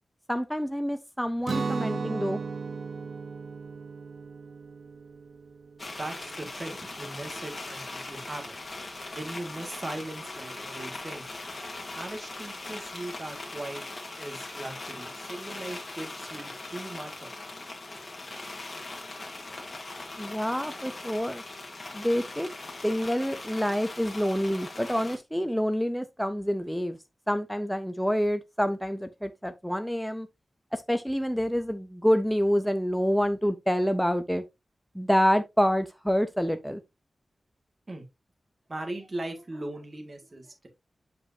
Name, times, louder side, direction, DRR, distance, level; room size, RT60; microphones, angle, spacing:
voice 1, 0.3-2.4 20.2-21.4 21.9-22.5 22.8-27.0 27.3-30.3 30.7-34.4 34.9-36.8, equal, ahead, 0.6 m, -27 dB
Guitar, 1.4-7.3, right 4 dB, 65° right, 0.9 m, -36 dB
sound 1, 5.8-25.2, left 2 dB, 35° left, 2.1 m, -40 dB
voice 2, 6.0-8.6 9.1-11.2 11.9-13.8 14.2-17.3 22.7-22.8 37.9-38.0 38.7-40.7, right 2 dB, 35° right, 1.7 m, -39 dB
8.1 x 5.1 x 2.6 m
wide cardioid pair, 110°, 0 cm